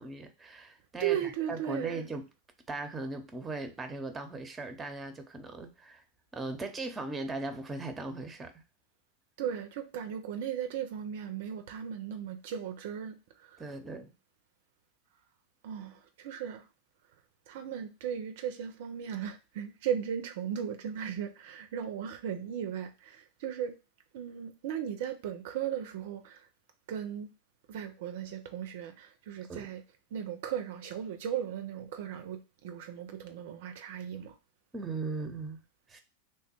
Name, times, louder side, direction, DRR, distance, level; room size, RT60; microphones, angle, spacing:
voice 1, 0.0-2.3 2.7-6.0 6.3-8.6 13.6-14.1 29.5-29.7 34.7-35.6 35.9-36.0, right 3 dB, 20° right, 0.7 m, -38 dB
voice 2, 1.0-2.0 9.4-13.1 15.6-16.6 17.5-23.7 24.1-26.4 26.9-27.3 27.7-29.8 30.1-34.3, right 9 dB, 65° right, 0.4 m, -36 dB
3.3 x 2.2 x 4.3 m
hypercardioid pair, 100°, 0 cm